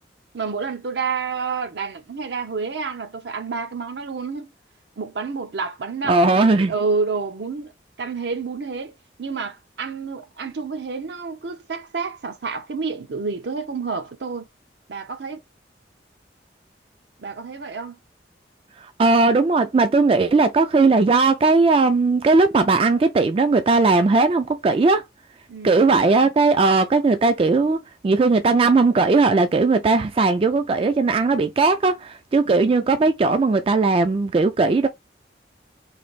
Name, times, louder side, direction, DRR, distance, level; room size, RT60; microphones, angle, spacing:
voice 1, 0.3-4.5 5.0-7.7 8.0-8.9 9.2-14.5 14.9-15.4 17.2-18.0 25.5-25.9, right 4 dB, 75° right, 0.6 m, -29 dB
voice 2, 6.1-6.7 19.0-25.0 25.6-34.9, right 3 dB, 30° right, 0.3 m, -18 dB
3.3 x 2.6 x 3.9 m
head